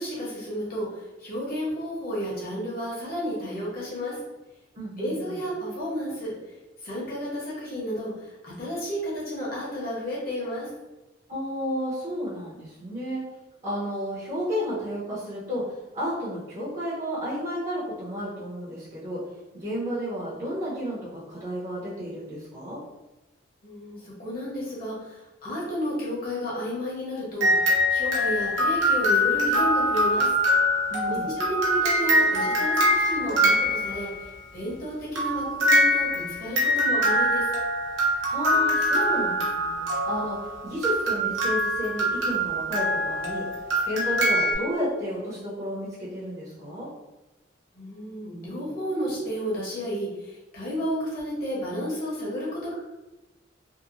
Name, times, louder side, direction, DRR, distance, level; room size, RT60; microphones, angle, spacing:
voice 1, 0.0-4.2 5.0-6.3 6.8-10.7 23.6-30.3 31.1-37.5 47.7-52.7, equal, 50° left, -6 dB, 1.1 m, -32 dB
voice 2, 4.7-5.4 11.3-13.2 13.6-15.6 15.9-19.2 19.5-22.8 30.9-31.4 38.2-43.4 43.8-46.9, equal, 35° right, -10 dB, 0.8 m, -32 dB
sound 1, 27.4-34.3 35.2-44.5, equal, 90° right, 0.8 m, -24 dB
2.8 x 2.2 x 2.5 m, 1.1 s
head